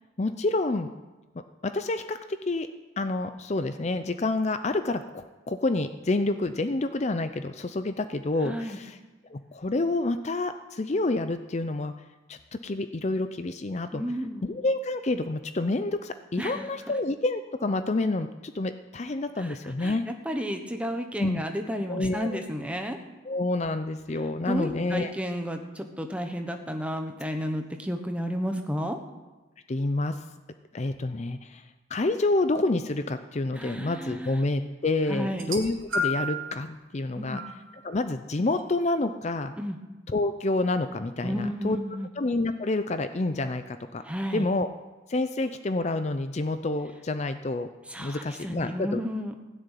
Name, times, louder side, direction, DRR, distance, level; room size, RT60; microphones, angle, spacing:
voice 1, 0.2-0.9 1.6-2.7 3.0-9.0 9.3-11.9 12.3-14.0 14.4-20.0 21.2-21.4 21.9-22.4 23.3-25.1 29.7-30.2 30.7-31.6 31.9-37.4 37.8-39.5 40.1-41.8 42.2-44.0 44.3-44.7 45.1-47.7 48.0-49.0, left 2 dB, 35° left, 9 dB, 0.5 m, -28 dB
voice 2, 8.4-8.8 13.9-14.4 16.4-16.7 19.4-23.0 24.5-29.0 33.6-34.4 35.1-35.5 37.2-37.4 39.6-39.8 41.2-42.1 44.0-44.5 47.9-49.5, equal, 5° right, 5 dB, 1.1 m, -32 dB
sound 1, 35.3-36.5 37.3-37.6 38.6-38.7, left 2 dB, 90° right, 2.6 m, -30 dB
16.0 x 6.8 x 9.1 m, 1.2 s
head